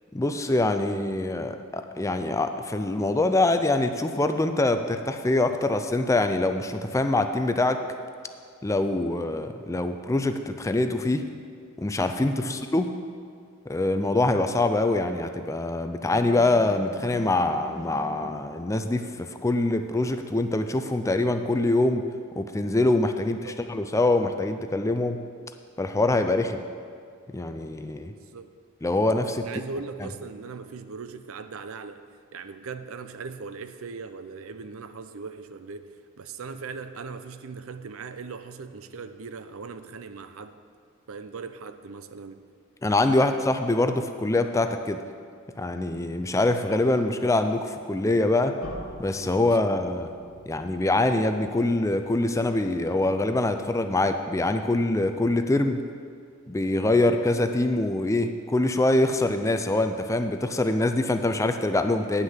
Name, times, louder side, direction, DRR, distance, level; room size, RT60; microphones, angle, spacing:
voice 1, 0.1-7.9 8.6-11.3 11.8-12.9 13.7-22.1 22.4-25.2 25.8-26.6 27.3-28.1 28.8-29.5 42.8-45.0 45.6-48.5 49.0-50.1 50.5-55.8 56.5-62.2, left 2 dB, 15° left, 8 dB, 0.4 m, -24 dB
sound 1, 16.1-18.3, left 1 dB, 15° right, 1.3 m, -42 dB
voice 2, 23.2-23.6 28.1-28.5 29.4-32.0 32.3-40.6 41.1-42.4, right 4 dB, 70° right, 10 dB, 0.5 m, -39 dB
sound 2, 48.6-53.4, equal, 70° left, 1.5 m, -45 dB
9.7 x 6.3 x 7.3 m, 2.2 s
head